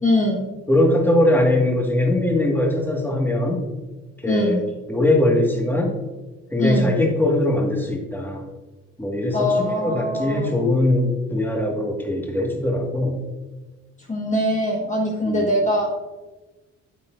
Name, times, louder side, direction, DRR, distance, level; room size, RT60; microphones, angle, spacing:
voice 1, 0.0-0.5 4.2-4.6 6.6-6.9 9.3-10.5 14.1-15.9, left 1 dB, 25° left, -2 dB, 1.3 m, -22 dB
voice 2, 0.7-3.6 4.2-4.6 4.9-6.0 6.5-8.5 9.0-13.2 15.2-15.5, left 1 dB, 5° left, 0 dB, 1.6 m, -21 dB
8.7 x 8.4 x 2.5 m, 1.2 s
cardioid pair, 90°, 30 cm